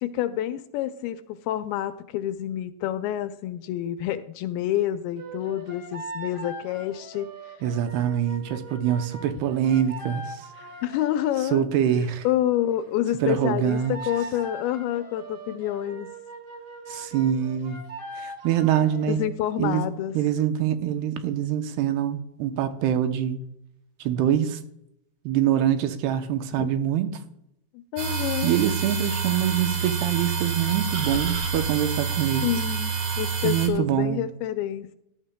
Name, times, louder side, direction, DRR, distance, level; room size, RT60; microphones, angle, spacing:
voice 1, 0.0-7.5 10.6-11.7 12.2-16.1 19.1-20.2 26.6-26.7 27.9-28.6 32.4-34.9, left 12 dB, 80° left, 2.3 m, -28 dB
sound 1, 5.2-11.4 13.2-19.4, right 2 dB, 40° right, 1.6 m, -40 dB
voice 2, 7.6-10.3 11.5-12.3 13.2-14.0 16.9-17.8 18.2-19.2 19.6-19.8 20.1-23.4 24.0-24.6 25.3-27.2 28.4-32.5 33.4-34.2, right 10 dB, 80° right, 2.7 m, -24 dB
sound 2, 28.0-33.7, right 6 dB, 60° right, 1.6 m, -28 dB
18.0 x 11.0 x 2.2 m
omnidirectional pair, 4.6 m